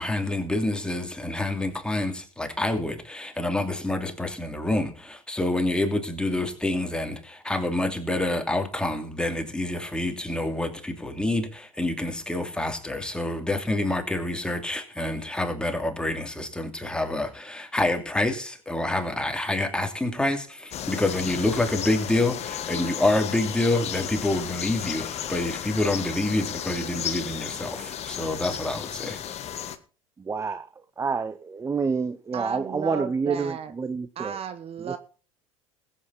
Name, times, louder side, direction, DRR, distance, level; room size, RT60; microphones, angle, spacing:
voice 1, 0.0-29.2, left 2 dB, 5° left, 2.8 m, -27 dB
sound 1, 20.7-29.8, left 9 dB, 35° left, 1.4 m, -34 dB
voice 2, 30.2-30.7 31.0-34.4 34.8-35.0, right 5 dB, 15° right, 0.7 m, -28 dB
voice 3, 32.3-33.7 34.2-35.0, right 8 dB, 35° right, 1.1 m, -34 dB
21.0 x 8.6 x 4.2 m
figure-of-eight pair, 70°, 18 cm